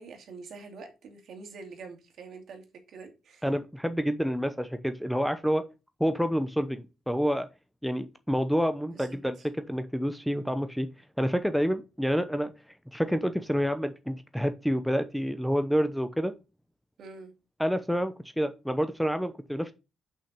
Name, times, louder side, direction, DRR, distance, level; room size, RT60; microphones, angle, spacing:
voice 1, 0.0-3.5 8.9-9.5 17.0-17.3, right 4 dB, 65° right, 2.3 m, -46 dB
voice 2, 3.4-5.6 6.0-7.5 7.8-10.9 11.2-12.5 12.9-16.3 17.6-19.7, equal, ahead, 0.9 m, -28 dB
5.8 x 5.8 x 6.7 m
cardioid pair, 90°, 0 cm